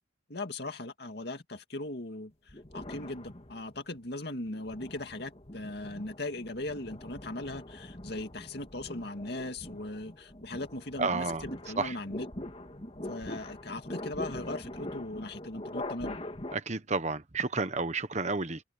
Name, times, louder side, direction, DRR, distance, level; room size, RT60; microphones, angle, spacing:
voice 1, 0.3-12.3 13.0-16.2, left 2 dB, 55° left, 2.3 m, -39 dB
sound 1, 2.5-3.9 4.5-16.5, left 1 dB, 30° left, 2.1 m, -43 dB
voice 2, 11.0-11.4 11.8-11.9 16.5-18.6, right 3 dB, 35° right, 1.1 m, -31 dB
open air
head